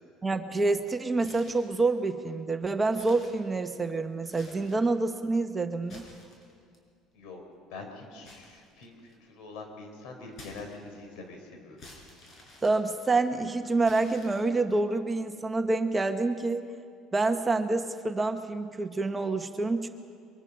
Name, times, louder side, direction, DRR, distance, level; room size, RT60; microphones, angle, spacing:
voice 1, 0.2-6.0 12.6-16.6 17.1-19.9, right 3 dB, 15° right, 7 dB, 1.1 m, -27 dB
sound 1, 1.1-1.8 2.3-2.4 2.8-3.9 4.2-4.9 5.7-6.8 8.2-9.3 10.3-11.1 11.8-13.3 13.8-14.7, left 1 dB, 45° left, 6.1 m, -52 dB
voice 2, 7.7-11.8, left 3 dB, 75° left, 4 dB, 4.6 m, -44 dB
23.5 x 23.5 x 5.6 m, 2.2 s
cardioid pair, 120°, 0 cm